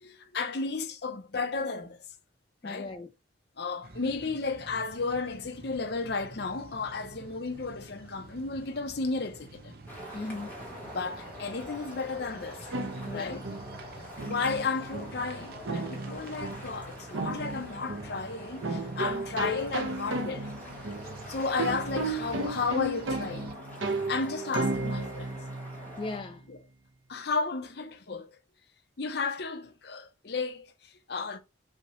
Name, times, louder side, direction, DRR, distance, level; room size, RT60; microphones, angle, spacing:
voice 1, 0.0-2.0 2.6-2.9 3.6-9.7 10.9-12.7 13.1-13.4 14.2-20.6 21.3-23.5 24.1-25.4 26.5-26.6 27.1-28.4 29.0-31.4, left 4 dB, 55° left, 0.7 m, -33 dB
voice 2, 2.6-3.1 10.1-10.5 13.1-13.4 26.0-26.4, left 3 dB, 25° left, 0.3 m, -37 dB
sound 1, 3.8-23.5, right 2 dB, 55° right, 0.7 m, -50 dB
sound 2, 9.9-26.2, equal, 10° left, 1.3 m, -45 dB
sound 3, 12.7-26.3, right 2 dB, 90° right, 0.8 m, -35 dB
5.8 x 2.8 x 3.0 m
head